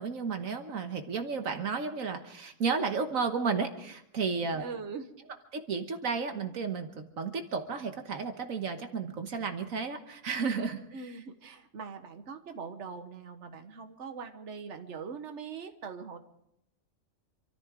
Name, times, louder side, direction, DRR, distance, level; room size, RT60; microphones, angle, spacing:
voice 1, 0.0-4.6 5.5-11.2, right 5 dB, 80° right, 6 dB, 1.6 m, -33 dB
voice 2, 4.6-5.1 10.9-16.2, right 5 dB, 60° right, 6 dB, 1.6 m, -42 dB
27.0 x 14.0 x 3.7 m, 0.79 s
omnidirectional pair, 1.4 m